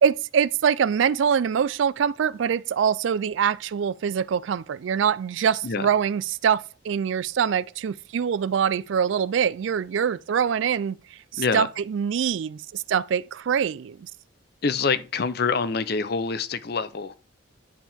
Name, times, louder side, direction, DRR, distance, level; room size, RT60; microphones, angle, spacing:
voice 1, 0.0-14.1, right 7 dB, 70° right, 0.3 m, -24 dB
voice 2, 11.4-11.7 14.6-17.2, left 5 dB, 50° left, 0.5 m, -26 dB
10.5 x 4.5 x 3.5 m
head